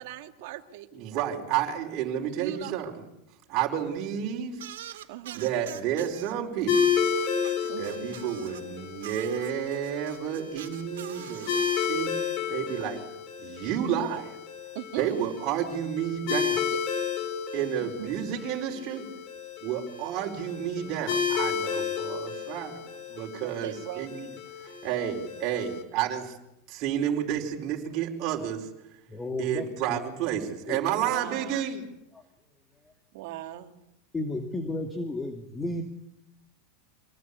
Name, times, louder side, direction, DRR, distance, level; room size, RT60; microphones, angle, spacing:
voice 1, 0.0-0.9 2.4-2.7 5.1-5.5 7.7-8.1 14.7-15.2 17.8-18.1 23.3-24.1 31.1-31.7 33.1-33.8, right 15 dB, 65° right, 5 dB, 2.5 m, -39 dB
voice 2, 0.9-2.9 3.5-4.6 5.3-7.0 7.8-11.6 11.9-12.1 12.5-13.0 13.4-14.4 15.0-16.6 17.5-19.1 19.6-22.8 23.1-24.3 24.6-26.3 26.7-28.7 29.4-31.8, right 9 dB, 45° right, 0 dB, 4.7 m, -31 dB
sound 1, 4.6-6.3 6.7-8.6 9.0-11.9, right 12 dB, 85° right, 2.6 m, -44 dB
sound 2, 6.7-25.8, left 6 dB, 50° left, 6.2 m, -32 dB
voice 3, 29.1-30.0 30.7-30.8 34.1-35.8, left 2 dB, 15° left, 5 dB, 2.2 m, -33 dB
26.0 x 19.0 x 8.5 m, 0.84 s
supercardioid pair, 140°, 0 cm